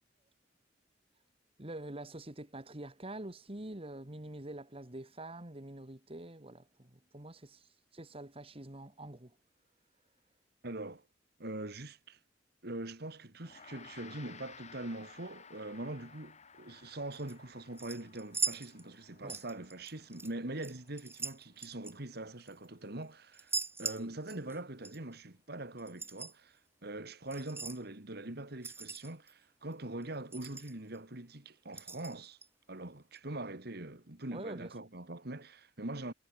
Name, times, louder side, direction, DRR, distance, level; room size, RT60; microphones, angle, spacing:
voice 1, 1.6-9.4 19.2-19.4 34.3-34.7, right 1 dB, 30° right, 2.1 m, -46 dB
voice 2, 10.6-11.0 11.4-12.2 12.6-32.4 32.7-36.1, right 2 dB, 60° right, 2.4 m, -43 dB
Gong, 13.4-23.0, left 6 dB, 40° left, 4.2 m, -57 dB
sound 1, 17.1-17.3 17.8-19.0 19.3-20.3 20.6-22.7 23.3-24.6 24.8-25.0 25.8-26.3 27.3-27.8 28.6-29.3 29.7-29.8 30.0-30.1 30.3-31.0 31.7-32.5 33.2-33.3, right 4 dB, 15° right, 3.6 m, -40 dB
head